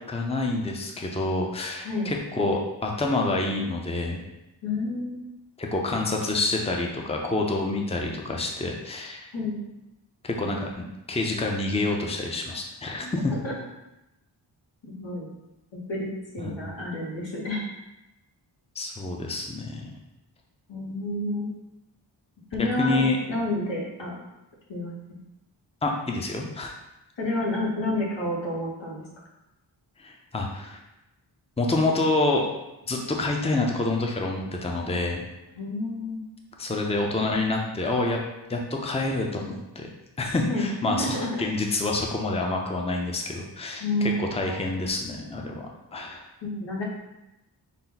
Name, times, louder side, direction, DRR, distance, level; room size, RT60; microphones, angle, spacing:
voice 1, 0.1-4.2 5.6-9.3 10.2-13.3 16.4-16.7 18.8-19.8 22.8-23.2 25.8-26.7 30.0-30.8 31.6-32.5 32.9-35.2 36.6-38.2 38.5-39.9 40.2-46.2, left 2 dB, 15° left, 1 dB, 0.6 m, -27 dB
voice 2, 4.6-5.2 9.3-9.6 13.0-13.6 15.0-15.3 15.9-17.6 20.7-21.5 22.5-23.0 23.3-24.1 24.7-24.9 27.2-29.0 35.5-36.2 40.4-41.5 43.8-44.6 46.4-46.8, left 1 dB, 85° left, -4 dB, 1.3 m, -29 dB
5.6 x 2.2 x 3.9 m, 0.94 s
cardioid pair, 60°, 44 cm